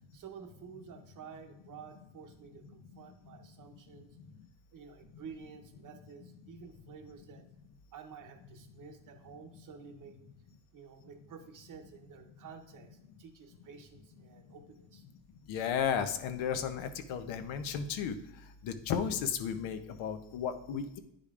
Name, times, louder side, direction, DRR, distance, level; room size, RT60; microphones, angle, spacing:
voice 1, 0.1-4.1 4.7-7.4 7.9-10.2 10.7-15.1, right 6 dB, 45° right, 6 dB, 0.7 m, -51 dB
voice 2, 15.5-18.1 18.6-21.0, left 7 dB, 85° left, 9 dB, 0.8 m, -34 dB
10.0 x 5.1 x 2.4 m, 0.80 s
cardioid pair, 180°, 46 cm